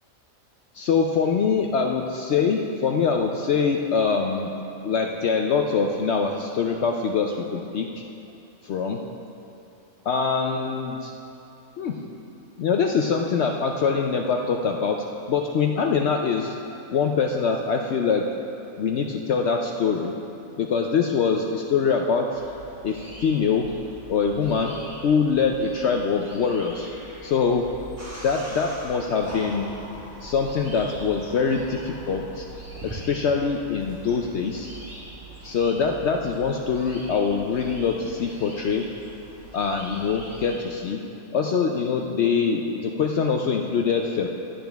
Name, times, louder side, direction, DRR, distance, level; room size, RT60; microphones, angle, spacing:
voice 1, 0.7-4.5 4.8-8.0 8.6-9.0 10.1-11.1 11.8-12.0 12.6-16.5 16.9-18.3 18.8-20.1 20.6-22.4 22.8-23.7 24.1-26.9 27.2-27.7 28.2-29.8 30.2-32.5 32.8-34.7 35.4-38.9 39.5-41.0 41.3-44.3, left 5 dB, 65° left, 2 dB, 0.8 m, -24 dB
sound 1, 22.3-40.6, right 1 dB, 35° right, 2.6 m, -43 dB
sound 2, 28.0-33.0, right 1 dB, 10° right, 1.2 m, -41 dB
12.5 x 10.5 x 3.4 m, 2.8 s
omnidirectional pair, 1.4 m